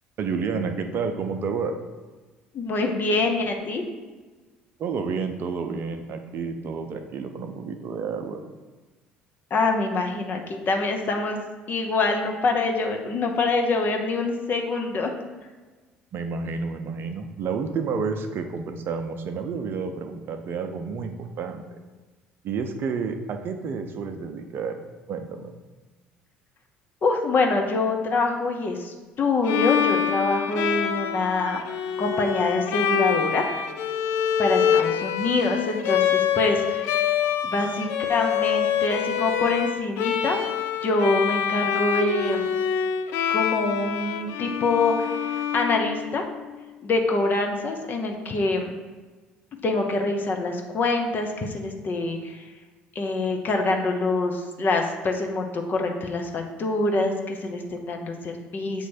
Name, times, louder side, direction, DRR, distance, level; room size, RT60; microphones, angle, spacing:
voice 1, 0.2-1.8 4.8-8.4 16.1-21.6 22.4-24.8 25.1-25.5, right 5 dB, 50° right, 6 dB, 0.6 m, -30 dB
voice 2, 2.5-3.8 9.5-11.4 11.7-15.1 27.0-31.6 32.0-33.4 34.4-37.1 37.4-40.4 40.8-42.5 43.3-46.2 46.8-48.7 49.6-52.4 52.9-58.9, left 3 dB, 45° left, 3 dB, 0.9 m, -25 dB
Bowed string instrument, 29.4-46.4, left 8 dB, 65° left, 0.4 m, -26 dB
7.1 x 3.1 x 4.3 m, 1.3 s
hypercardioid pair, 60°, 5 cm